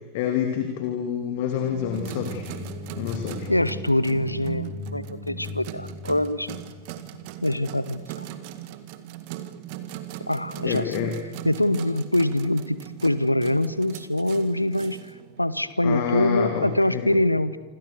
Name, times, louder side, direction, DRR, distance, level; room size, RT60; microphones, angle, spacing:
voice 1, 0.1-2.5 3.0-3.5 10.6-11.2 15.8-17.1, left 8 dB, 50° left, 5 dB, 2.7 m, -27 dB
sound 1, 1.6-7.5, left 7 dB, 30° left, 1.4 m, -39 dB
sound 2, 1.9-15.7, right 12 dB, 45° right, 1.9 m, -39 dB
voice 2, 3.5-6.6 7.4-8.3 10.3-10.9 11.4-15.0 15.4-17.6, left 1 dB, 85° left, 16 dB, 1.0 m, -24 dB
27.5 x 26.5 x 6.7 m, 1.3 s
figure-of-eight pair, 90°, 0 cm